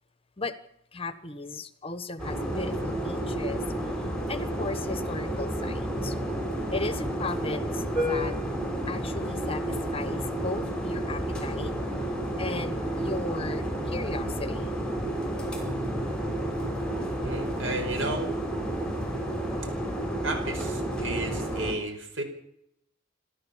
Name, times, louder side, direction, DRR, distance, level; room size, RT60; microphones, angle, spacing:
voice 1, 0.9-3.6 4.3-6.2 6.7-8.3 8.9-11.7 12.4-14.7, left 3 dB, 30° left, 13 dB, 1.3 m, -36 dB
sound 1, 2.2-21.7, right 1 dB, 5° left, 5.4 m, -31 dB
voice 2, 17.2-18.3 20.2-22.2, right 2 dB, 80° right, 7 dB, 5.1 m, -33 dB
27.5 x 13.0 x 7.3 m, 0.77 s
head